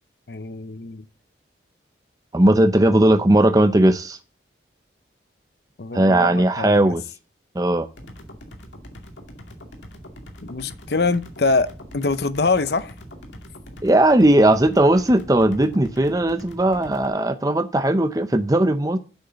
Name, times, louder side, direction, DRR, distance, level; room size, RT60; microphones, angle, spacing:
voice 1, 0.3-1.0 5.8-6.9 10.4-11.7 11.9-12.9, left 3 dB, 60° left, 0.7 m, -24 dB
voice 2, 2.3-4.2 5.9-7.0 7.6-7.9 13.8-19.0, right 1 dB, 20° right, 0.6 m, -17 dB
sound 1, 7.9-17.1, equal, 90° left, 2.3 m, -42 dB
8.0 x 6.4 x 6.9 m
head